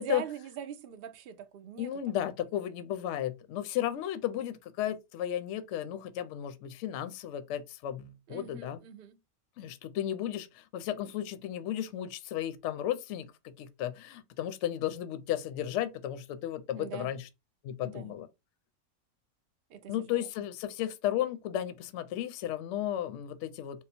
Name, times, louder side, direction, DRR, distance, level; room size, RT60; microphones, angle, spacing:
voice 1, 0.0-1.9 8.3-9.2 16.8-17.1 17.8-18.1 19.7-20.3, right 9 dB, 80° right, 0.5 m, -43 dB
voice 2, 1.8-8.8 9.6-17.3 17.6-18.3 19.9-23.9, left 11 dB, 65° left, 0.8 m, -34 dB
3.6 x 2.0 x 4.2 m
omnidirectional pair, 1.5 m